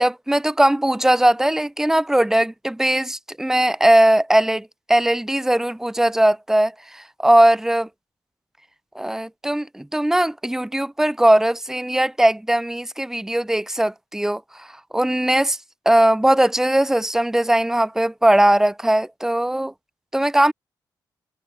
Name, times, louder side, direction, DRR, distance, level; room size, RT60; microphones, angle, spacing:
voice 1, 0.0-7.9 8.9-14.7 14.9-15.6 15.8-19.7 20.1-20.5, right 1 dB, 5° right, 1.6 m, -19 dB
cardioid pair, 115°, 7 cm